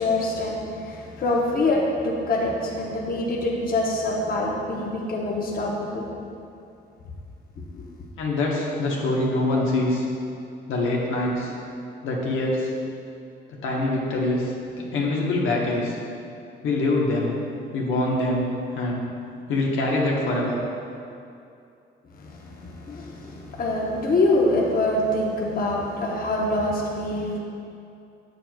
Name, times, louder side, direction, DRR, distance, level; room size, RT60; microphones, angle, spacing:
voice 1, 0.0-6.1 7.7-7.8 22.2-27.4, left 2 dB, 45° left, -2 dB, 0.8 m, -25 dB
voice 2, 8.2-10.0 10.7-11.5 12.0-12.7 13.5-16.0 16.6-17.3 17.7-19.1 19.5-20.6, left 2 dB, 85° left, -3 dB, 1.1 m, -24 dB
7.7 x 6.8 x 2.3 m, 2.6 s
cardioid pair, 90°, 20 cm